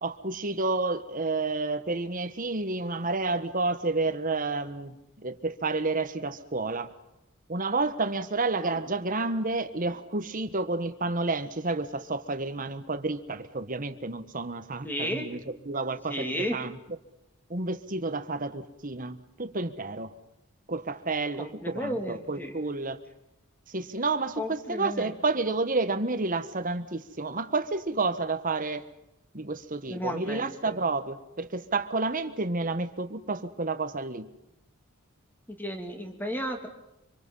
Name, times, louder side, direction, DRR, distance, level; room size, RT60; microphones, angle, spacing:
voice 1, 0.0-6.9 7.5-16.8 17.5-20.1 20.7-23.0 23.7-28.8 29.3-34.3, right 3 dB, 40° right, 1.4 m, -30 dB
voice 2, 14.8-15.3 16.1-16.6 21.4-22.5 24.4-25.1 29.9-30.8 35.5-36.7, equal, 10° left, 3.0 m, -33 dB
26.0 x 25.0 x 5.6 m
head